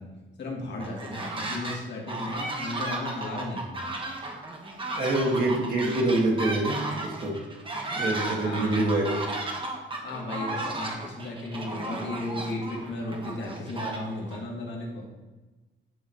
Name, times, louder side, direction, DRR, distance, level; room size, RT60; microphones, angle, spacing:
voice 1, 0.0-3.8 8.4-8.8 10.0-15.1, left 2 dB, 60° left, -1 dB, 2.2 m, -35 dB
sound 1, 0.8-1.8 2.1-14.4, right 2 dB, 25° right, 1.3 m, -34 dB
voice 2, 5.0-7.4 7.9-9.2, right 2 dB, 45° right, -3 dB, 1.7 m, -26 dB
10.5 x 4.1 x 4.6 m, 1.2 s
cardioid pair, 130°, 21 cm